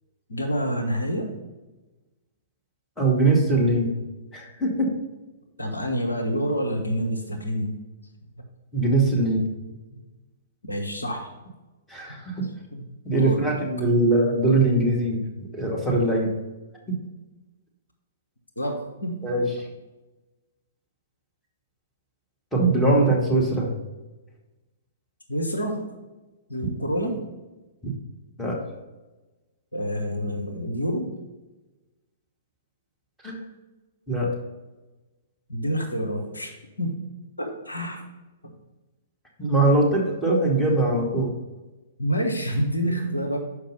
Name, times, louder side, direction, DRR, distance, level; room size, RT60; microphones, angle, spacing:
voice 1, 0.3-1.3 5.6-7.8 10.6-11.3 12.1-12.2 12.7-12.8 13.1-13.4 13.9-14.0 18.6-19.2 25.3-25.9 26.5-27.2 29.7-31.1 35.5-36.5 36.8-37.0 37.4-38.1 38.4-38.5 42.0-43.4, equal, 80° left, 2 dB, 1.2 m, -27 dB
voice 2, 3.0-3.9 4.3-4.9 8.7-9.5 11.9-12.4 13.0-15.2 15.5-16.3 16.9-17.0 19.2-19.4 22.5-23.7 28.4-28.6 33.2-33.4 34.1-34.3 39.4-41.3, right 2 dB, 5° left, -4 dB, 2.0 m, -21 dB
6.6 x 5.2 x 5.5 m, 1.1 s
figure-of-eight pair, 115°, 0 cm